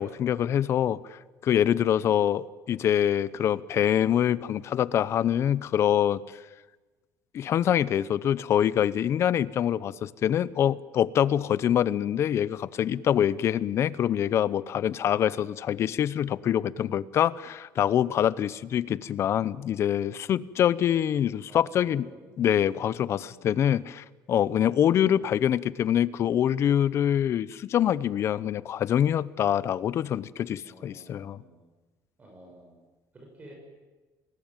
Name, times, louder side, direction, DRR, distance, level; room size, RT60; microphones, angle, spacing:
voice 1, 0.0-6.2 7.3-22.0 22.4-31.4, left 10 dB, 40° left, 18 dB, 0.8 m, -25 dB
voice 2, 1.8-2.2 20.6-20.7 21.5-22.3 23.2-23.6 30.6-31.7 32.2-32.8 33.1-33.5, right 1 dB, 20° right, 1 dB, 7.0 m, -51 dB
29.5 x 20.0 x 9.1 m, 1.2 s
cardioid pair, 160°, 7 cm